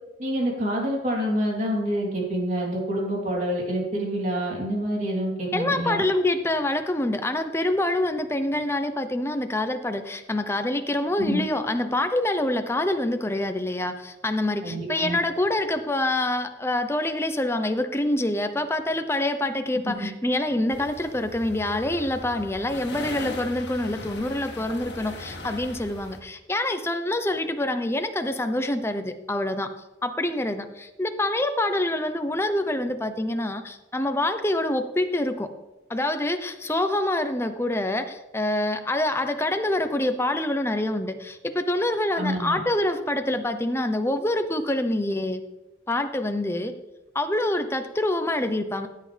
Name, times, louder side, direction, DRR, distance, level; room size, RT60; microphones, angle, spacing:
voice 1, 0.2-6.0 11.2-11.4 14.6-15.2 20.0-20.1 42.1-42.6, equal, 45° right, -2 dB, 3.3 m, -27 dB
voice 2, 5.5-29.7 30.0-35.5 35.9-45.4 45.9-46.7 47.1-48.9, left 1 dB, 15° left, 8 dB, 0.7 m, -26 dB
sound 1, 20.7-26.2, left 2 dB, 70° left, 1.9 m, -39 dB
16.0 x 8.7 x 3.4 m, 1.0 s
head